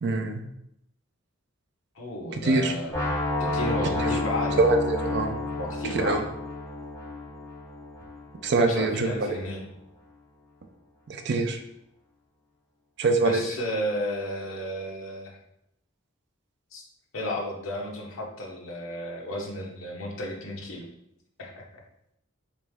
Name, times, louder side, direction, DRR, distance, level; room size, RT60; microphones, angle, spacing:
voice 1, 0.0-0.4 2.3-2.7 4.0-4.1 4.6-5.4 6.0-6.2 8.4-9.4 11.1-11.6 13.0-13.4, right 3 dB, 55° right, 5 dB, 0.4 m, -24 dB
voice 2, 2.0-3.1 3.4-4.6 5.6-6.2 8.6-9.6 13.2-15.4 16.7-16.8 17.1-20.9 21.4-21.6, left 1 dB, 80° left, 0 dB, 0.8 m, -33 dB
sound 1, 2.9-8.8, left 2 dB, 15° left, 0.7 m, -30 dB
3.1 x 3.1 x 3.4 m, 0.78 s
head